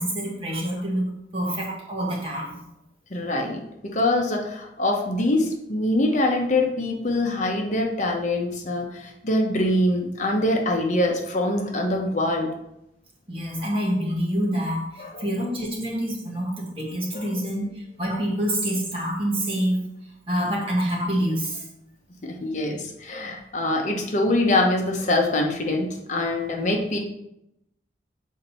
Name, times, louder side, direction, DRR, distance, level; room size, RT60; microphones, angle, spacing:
voice 1, 0.0-2.6 13.3-19.8 20.3-21.7, equal, 30° right, -3 dB, 1.8 m, -27 dB
voice 2, 3.1-12.5 15.0-15.2 17.1-17.2 22.2-27.0, left 1 dB, 45° left, 1 dB, 0.9 m, -24 dB
7.3 x 4.0 x 4.3 m, 0.83 s
head